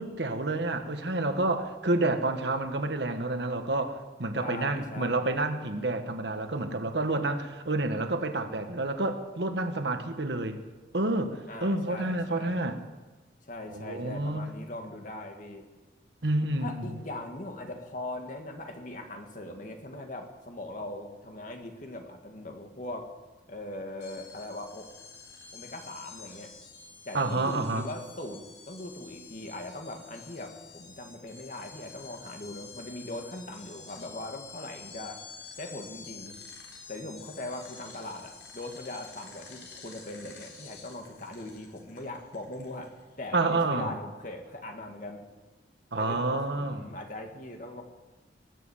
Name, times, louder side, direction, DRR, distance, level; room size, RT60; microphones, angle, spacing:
voice 1, 0.0-10.6 10.9-12.8 13.7-14.5 16.2-17.0 27.1-27.8 43.3-43.9 45.9-46.8, right 2 dB, 75° right, 7 dB, 1.3 m, -29 dB
voice 2, 4.4-5.2 11.5-12.6 13.4-15.6 16.6-23.1 23.5-24.9 25.5-26.5 27.1-35.2 35.6-36.4 36.9-42.9 43.2-45.3 46.0-47.8, left 1 dB, 45° left, 4 dB, 1.9 m, -40 dB
sound 1, 24.0-43.1, left 5 dB, 80° left, 4.1 m, -49 dB
20.0 x 7.5 x 7.2 m, 1.2 s
head